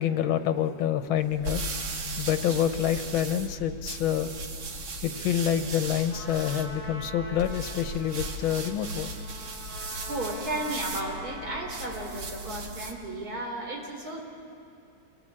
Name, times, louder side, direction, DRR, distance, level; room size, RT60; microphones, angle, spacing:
voice 1, 0.0-1.7 2.2-4.3 5.0-9.1, left 10 dB, 85° left, 10 dB, 1.7 m, -27 dB
sound 1, 1.1-13.0, right 2 dB, 80° right, 2.5 m, -37 dB
Trumpet, 6.1-12.3, equal, 5° right, 7.2 m, -44 dB
voice 2, 10.0-14.3, right 1 dB, 45° right, 0 dB, 4.4 m, -34 dB
27.5 x 18.0 x 8.7 m, 2.5 s
omnidirectional pair, 2.2 m